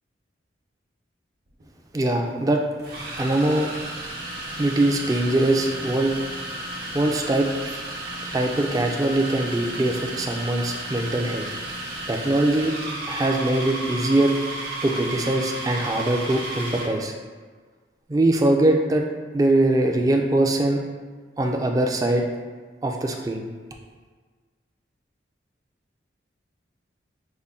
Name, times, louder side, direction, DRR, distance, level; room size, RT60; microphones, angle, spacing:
sound 1, 1.5-1.6 2.8-17.0, right 1 dB, 55° right, 0.9 m, -33 dB
voice 1, 1.9-2.6 3.2-3.7 4.6-6.1 6.9-7.8 8.3-11.5 12.1-12.7 13.1-14.3 14.8-17.1 18.1-19.1 19.3-20.8 21.4-22.2 22.8-23.5, right 1 dB, 20° right, 2 dB, 0.3 m, -22 dB
5.4 x 2.1 x 3.6 m, 1.5 s
head